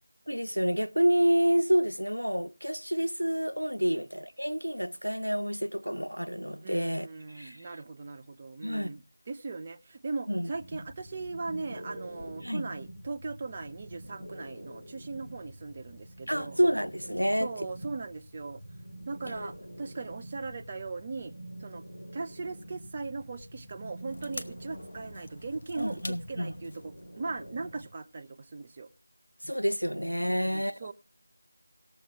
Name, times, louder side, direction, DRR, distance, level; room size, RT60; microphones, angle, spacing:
voice 1, 0.3-7.7 8.6-8.9 10.3-10.5 12.4-12.6 16.3-17.5 25.8-26.5 29.4-30.8, equal, 90° right, 0.6 m, -28 dB
voice 2, 6.6-16.6 17.4-18.6 19.1-21.3 21.6-21.8 22.1-28.9 30.2-30.9, right 3 dB, 25° right, 0.5 m, -39 dB
sound 1, 10.5-27.9, right 1 dB, 60° left, 3.0 m, -46 dB
sound 2, 24.1-28.6 28.9-29.0, left 2 dB, 40° left, 0.9 m, -47 dB
18.5 x 7.0 x 3.4 m
figure-of-eight pair, 165°, 0 cm